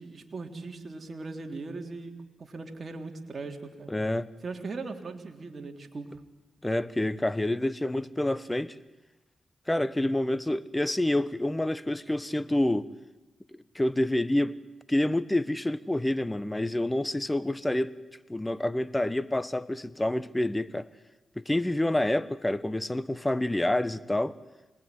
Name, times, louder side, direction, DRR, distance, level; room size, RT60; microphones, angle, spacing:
voice 1, 0.0-2.1 2.4-3.9 4.4-6.2, right 3 dB, 45° right, 3.6 m, -39 dB
voice 2, 3.9-4.3 6.6-8.7 9.7-12.9 13.7-14.6 14.9-17.9 18.3-20.8 21.4-24.4, left 1 dB, 15° left, 1.3 m, -28 dB
27.0 x 20.0 x 9.7 m
supercardioid pair, 45°, 0 cm